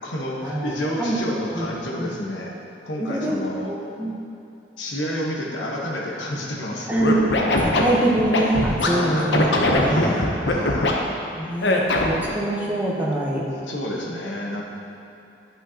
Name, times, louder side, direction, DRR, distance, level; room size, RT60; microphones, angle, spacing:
voice 1, 0.0-2.6 2.8-3.7 4.8-6.9 8.9-9.3 9.9-11.0 13.7-14.6, left 1 dB, 85° left, -2 dB, 1.1 m, -29 dB
voice 2, 3.0-3.4 3.7-4.1 6.9-7.2 7.6-10.2 11.4-13.4, right 1 dB, 10° right, -5 dB, 0.9 m, -24 dB
Scratching (performance technique), 7.0-8.9 9.3-10.9 11.6-12.2, left 2 dB, 70° left, 0.8 m, -20 dB
11.0 x 5.6 x 2.8 m, 2.8 s
head